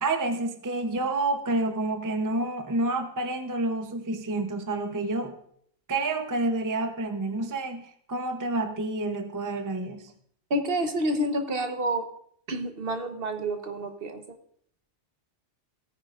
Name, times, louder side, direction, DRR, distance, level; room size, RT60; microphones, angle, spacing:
voice 1, 0.0-5.4 5.9-10.1, right 2 dB, 20° right, 6 dB, 0.7 m, -29 dB
voice 2, 10.5-12.0 12.5-14.2, right 1 dB, 50° right, 6 dB, 1.4 m, -28 dB
18.0 x 9.5 x 2.5 m, 0.64 s
omnidirectional pair, 1.2 m